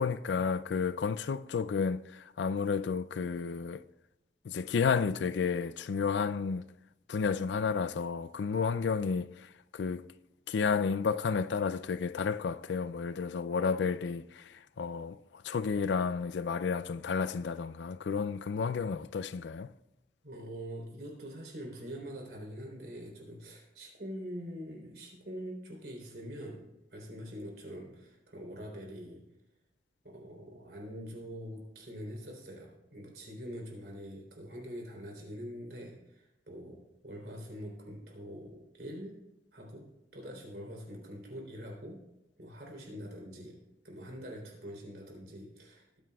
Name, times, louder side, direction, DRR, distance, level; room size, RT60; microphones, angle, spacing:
voice 1, 0.0-3.8 4.4-6.6 7.1-10.1 10.5-19.7, left 5 dB, 80° left, 0.4 m, -31 dB
voice 2, 20.2-29.2 30.0-39.2 39.5-42.0 42.4-43.6 43.8-46.0, equal, 65° right, 3.5 m, -44 dB
20.5 x 9.2 x 2.3 m
head